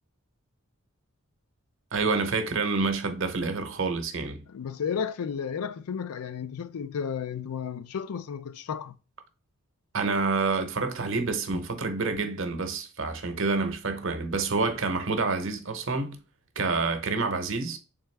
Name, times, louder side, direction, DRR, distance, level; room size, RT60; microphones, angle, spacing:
voice 1, 1.9-4.5 9.9-16.2 16.6-17.8, right 4 dB, 60° right, 0.8 m, -28 dB
voice 2, 4.5-9.0, left 7 dB, 90° left, 0.4 m, -33 dB
3.5 x 3.4 x 3.2 m
head